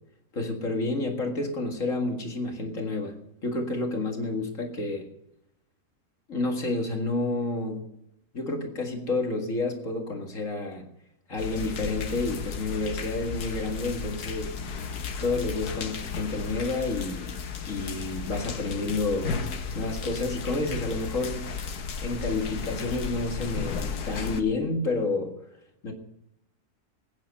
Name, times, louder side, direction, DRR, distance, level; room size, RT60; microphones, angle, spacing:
voice 1, 0.3-5.1 6.3-7.8 8.3-10.8 11.3-14.5 15.2-17.3 17.7-21.5 22.0-25.3 25.8-25.9, left 2 dB, 55° left, 3 dB, 2.3 m, -30 dB
sound 1, 11.4-24.4, left 5 dB, 80° left, 1.7 m, -34 dB
21.0 x 9.5 x 5.5 m, 0.80 s
omnidirectional pair, 1.6 m